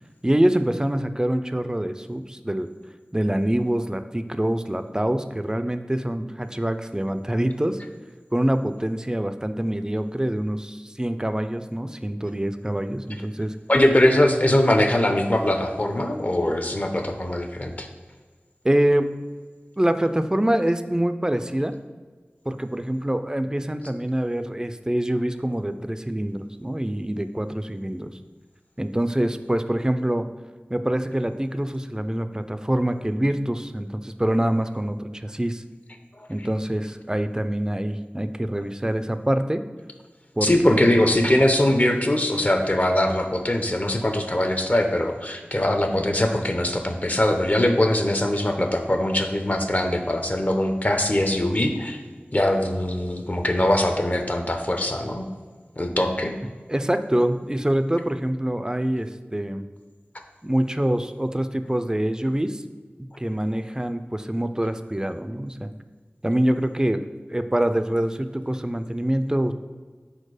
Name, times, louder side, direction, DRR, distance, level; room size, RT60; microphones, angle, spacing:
voice 1, 0.2-2.7 3.1-7.8 8.3-13.6 18.6-19.2 19.8-21.7 22.5-28.1 28.8-30.3 30.7-35.6 36.3-39.6 40.4-40.9 56.7-59.7 60.4-62.6 63.2-65.7 66.2-67.0 67.3-69.5, right 1 dB, 15° right, 10 dB, 0.4 m, -25 dB
voice 2, 13.7-17.9 40.4-52.0 52.3-55.2 55.8-56.3, left 1 dB, 40° left, 5 dB, 0.7 m, -21 dB
4.5 x 4.4 x 4.9 m, 1.4 s
wide cardioid pair, 45°, 4 cm